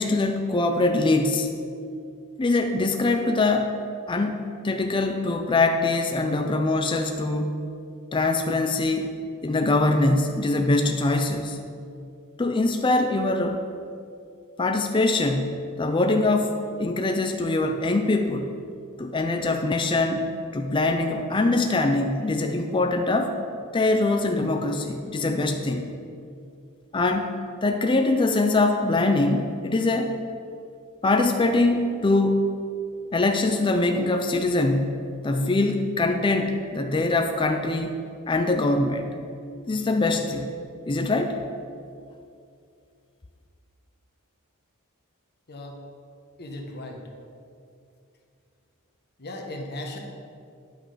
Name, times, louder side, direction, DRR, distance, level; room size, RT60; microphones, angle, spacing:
voice 1, 0.0-1.5 2.4-3.7 4.1-7.6 8.1-9.1 9.4-11.6 12.4-13.6 14.6-18.5 19.0-23.4 23.7-25.9 26.9-30.2 31.0-32.5 33.1-39.1 39.7-40.5 40.9-41.4, left 2 dB, 20° left, 5 dB, 0.4 m, -23 dB
voice 2, 46.4-47.0 49.2-50.0, left 1 dB, 45° left, 1 dB, 1.2 m, -36 dB
10.5 x 6.1 x 5.0 m, 2.5 s
head